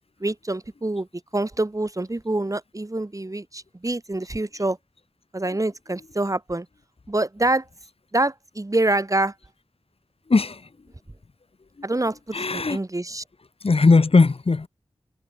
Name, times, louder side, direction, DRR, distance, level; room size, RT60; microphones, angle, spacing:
voice 1, 0.2-1.1 1.3-4.8 5.3-6.7 7.1-7.7 8.1-9.3 11.8-13.2, right 2 dB, 30° right, 7.8 m, -26 dB
voice 2, 10.3-10.6 12.3-12.8 13.6-14.7, left 3 dB, 70° left, 5.0 m, -18 dB
wide cardioid pair, 60°, 10 cm